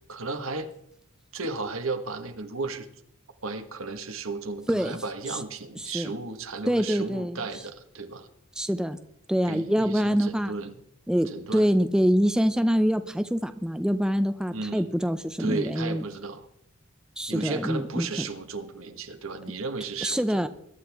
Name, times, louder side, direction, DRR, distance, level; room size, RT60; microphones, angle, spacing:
voice 1, 0.1-0.7 1.3-2.9 3.4-8.3 9.5-10.7 11.3-11.7 14.5-14.9 15.4-16.5 17.3-20.5, right 3 dB, 80° right, 7 dB, 1.4 m, -34 dB
voice 2, 6.7-7.4 8.6-9.0 9.3-10.5 11.1-16.0 17.2-18.1 20.0-20.5, equal, 5° right, 10 dB, 0.5 m, -25 dB
22.0 x 11.0 x 3.5 m, 0.73 s
head